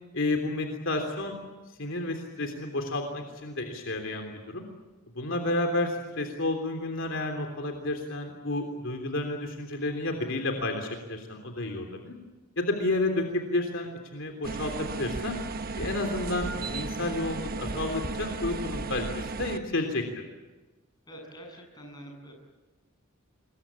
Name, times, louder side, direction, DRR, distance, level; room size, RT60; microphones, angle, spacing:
voice 1, 0.1-1.4 1.8-4.6 5.1-12.1 12.6-15.4 15.8-20.0, left 2 dB, 60° left, 4 dB, 3.3 m, -31 dB
sound 1, 14.4-19.6, right 3 dB, 45° right, 1.1 m, -34 dB
voice 2, 21.1-22.4, equal, 20° left, 2 dB, 7.7 m, -46 dB
26.0 x 22.5 x 8.7 m, 1.2 s
head